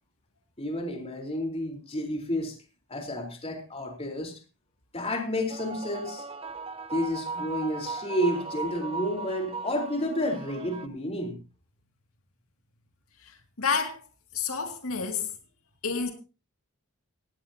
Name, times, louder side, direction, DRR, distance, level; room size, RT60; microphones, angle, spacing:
voice 1, 0.6-2.6 2.9-4.4 4.9-6.2 6.9-11.4, left 1 dB, 30° left, 4.1 m, -30 dB
sound 1, 5.5-10.9, right 4 dB, 25° right, 1.1 m, -37 dB
voice 2, 13.2-14.0 14.3-15.3 15.8-16.1, left 5 dB, 85° left, 2.4 m, -29 dB
18.5 x 17.0 x 2.9 m
head